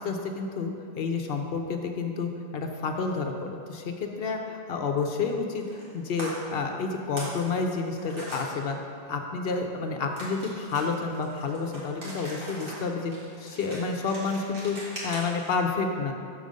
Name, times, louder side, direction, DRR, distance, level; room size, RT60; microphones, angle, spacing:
voice 1, 0.0-8.8 9.1-13.1 13.4-16.1, left 4 dB, 65° left, 4 dB, 0.8 m, -30 dB
sound 1, 5.6-5.9 6.2-6.3 6.8-7.4 7.7-8.4 10.2-15.5, right 1 dB, 55° right, 2.2 m, -41 dB
6.6 x 5.2 x 6.3 m, 2.4 s
omnidirectional pair, 1.1 m